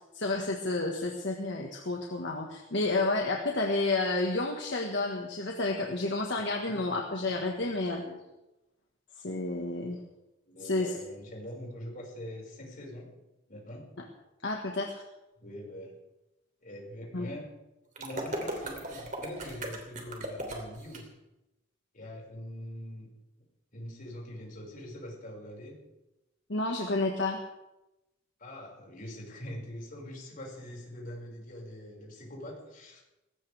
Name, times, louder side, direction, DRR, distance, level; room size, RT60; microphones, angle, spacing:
voice 1, 0.1-8.0 9.2-10.0 10.6-10.9 14.4-14.9 17.1-17.3 26.5-27.4, left 2 dB, 65° left, 1 dB, 1.7 m, -30 dB
voice 2, 7.5-8.2 10.5-13.1 13.5-13.9 15.4-16.0 16.6-17.5 18.0-21.1 21.9-23.1 23.7-25.8 28.4-33.0, left 1 dB, 45° left, -2 dB, 5.9 m, -43 dB
sound 1, 18.0-21.0, right 1 dB, 40° right, 3.1 m, -37 dB
20.0 x 17.5 x 3.5 m, 0.97 s
head